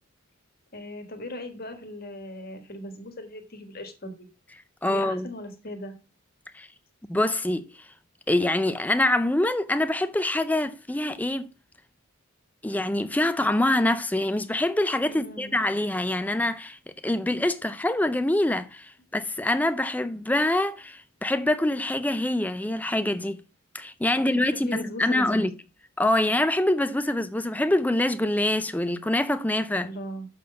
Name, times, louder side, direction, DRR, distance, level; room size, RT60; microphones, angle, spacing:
voice 1, 0.7-4.3 4.9-5.9 15.1-15.6 24.1-25.5 29.8-30.3, left 1 dB, 45° left, 1.5 m, -38 dB
voice 2, 4.8-5.3 6.5-6.7 7.1-7.9 8.3-11.5 12.6-23.4 23.7-25.5 26.0-29.9, left 1 dB, 5° left, 0.4 m, -25 dB
6.6 x 4.1 x 6.6 m
head